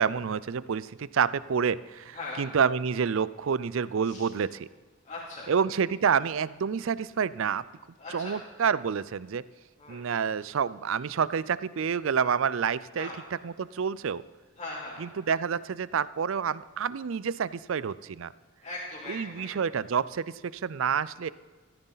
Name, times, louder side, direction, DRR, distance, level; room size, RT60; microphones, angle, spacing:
voice 1, 0.0-4.7 5.5-7.6 8.1-9.4 9.9-13.1 13.4-14.2 15.0-18.3 19.1-21.3, right 6 dB, 65° right, 18 dB, 0.4 m, -28 dB
voice 2, 2.1-2.4 4.0-4.3 5.0-5.5 8.0-8.4 9.8-10.0 13.0-13.2 14.6-15.1 18.6-19.5, left 2 dB, 30° left, -9 dB, 2.7 m, -39 dB
14.5 x 14.0 x 4.0 m, 1.4 s
head